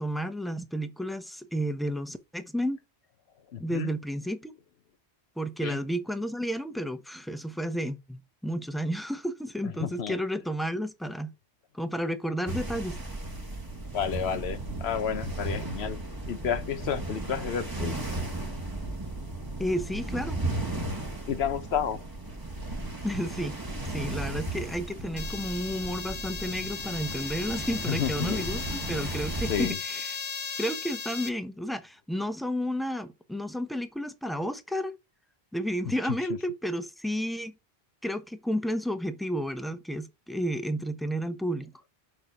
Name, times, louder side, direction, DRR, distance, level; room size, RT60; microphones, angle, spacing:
voice 1, 0.0-2.8 3.6-4.5 5.4-11.3 11.7-13.0 19.6-20.4 23.0-23.6 23.9-30.2 30.6-34.9 35.5-37.5 38.0-41.7, equal, ahead, 0.9 m, -32 dB
voice 2, 3.5-3.9 5.6-5.8 9.6-10.2 13.9-18.0 21.3-22.0 27.9-28.4 29.5-29.8, left 8 dB, 80° left, 1.1 m, -31 dB
sound 1, 12.5-29.7, right 2 dB, 20° right, 1.4 m, -35 dB
sound 2, 25.2-31.3, left 6 dB, 40° left, 0.4 m, -37 dB
6.9 x 5.9 x 4.7 m
omnidirectional pair, 1.1 m